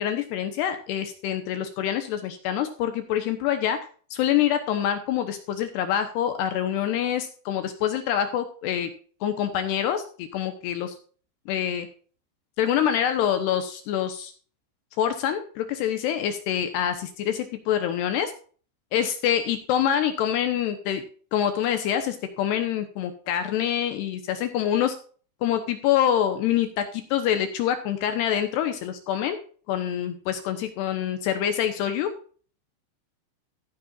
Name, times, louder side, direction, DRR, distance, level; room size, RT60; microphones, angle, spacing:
voice 1, 0.0-3.8 4.1-8.9 9.2-10.9 11.5-11.9 12.6-14.3 15.0-18.3 18.9-21.0 21.3-25.0 25.4-29.4 29.7-32.1, left 10 dB, 75° left, 8 dB, 2.7 m, -26 dB
14.5 x 9.5 x 2.5 m, 0.41 s
omnidirectional pair, 5.5 m